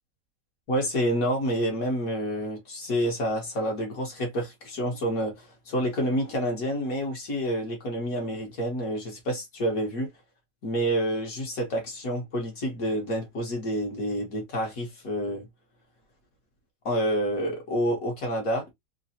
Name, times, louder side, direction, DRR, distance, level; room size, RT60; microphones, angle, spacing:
voice 1, 0.7-10.1 10.6-15.4 16.8-18.7, equal, 55° left, 1.5 m, -28 dB
3.8 x 2.1 x 2.6 m
omnidirectional pair, 1.9 m